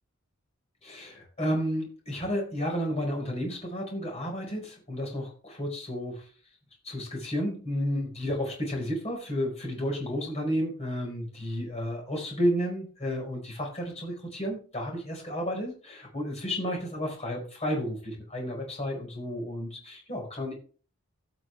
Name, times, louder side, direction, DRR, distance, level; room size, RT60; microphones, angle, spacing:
voice 1, 0.8-6.3 6.8-20.5, equal, 30° left, 0 dB, 4.8 m, -32 dB
17.0 x 6.3 x 3.4 m, 0.39 s
head